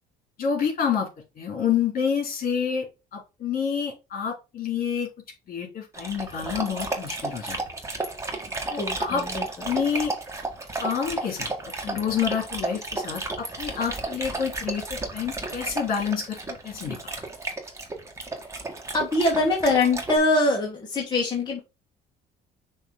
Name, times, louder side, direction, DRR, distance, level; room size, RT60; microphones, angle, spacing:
voice 1, 0.4-1.1 1.4-2.9 3.1-5.1 5.5-7.6 8.7-9.2 9.7-10.1 10.8-11.5 11.8-17.0, left 7 dB, 55° left, 1 dB, 3.1 m, -28 dB
Dog, 5.9-20.2, right 2 dB, 15° right, 1.6 m, -33 dB
voice 2, 8.8-9.7 18.9-21.6, left 2 dB, 25° left, -1 dB, 1.7 m, -23 dB
6.4 x 3.1 x 5.0 m, 0.27 s
cardioid pair, 110°, 17 cm